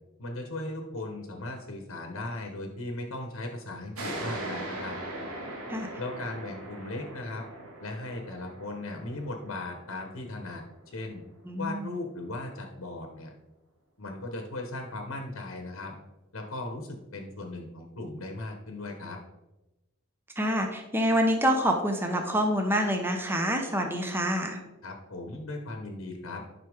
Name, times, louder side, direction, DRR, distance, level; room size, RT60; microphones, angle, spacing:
voice 1, 0.2-5.0 6.0-7.4 7.8-10.6 10.9-11.2 11.6-13.3 14.0-15.9 16.3-19.2 24.8-26.4, left 2 dB, 70° left, 3 dB, 1.1 m, -37 dB
sound 1, 3.9-11.1, right 1 dB, 85° right, 1.7 m, -40 dB
voice 2, 11.5-11.9 20.4-24.6, equal, 10° right, 3 dB, 0.8 m, -26 dB
9.7 x 5.7 x 3.5 m, 1.0 s
head